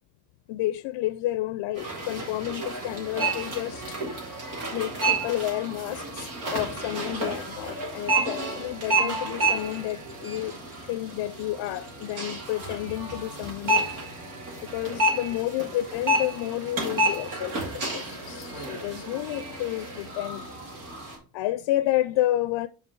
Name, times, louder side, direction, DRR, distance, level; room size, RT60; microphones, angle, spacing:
voice 1, 0.5-4.0 4.7-10.5 10.8-13.9 14.6-20.4 21.3-22.7, left 15 dB, 65° left, 0.5 m, -30 dB
sound 1, 1.7-21.2, right 2 dB, 75° right, 2.4 m, -30 dB
5.6 x 4.7 x 4.6 m
hypercardioid pair, 55°, 48 cm